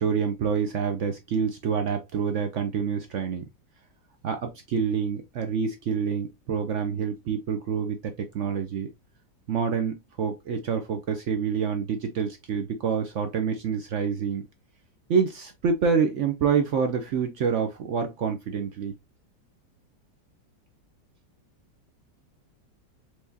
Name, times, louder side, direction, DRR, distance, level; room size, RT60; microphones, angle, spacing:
voice 1, 0.0-3.5 4.2-8.0 8.3-8.9 9.5-14.4 15.1-18.9, right 6 dB, 75° right, 0.6 m, -27 dB
4.7 x 3.4 x 2.6 m
omnidirectional pair, 1.9 m